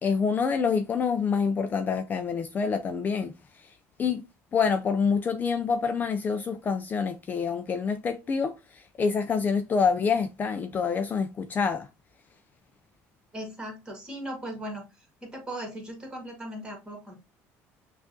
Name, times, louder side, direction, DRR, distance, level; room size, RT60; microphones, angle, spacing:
voice 1, 0.0-3.3 4.0-4.2 4.5-11.9, left 5 dB, 30° left, 0.4 m, -27 dB
voice 2, 13.3-14.8 15.2-17.2, right 1 dB, 15° right, 1.7 m, -38 dB
5.9 x 2.5 x 2.6 m
cardioid pair, 120°, 6 cm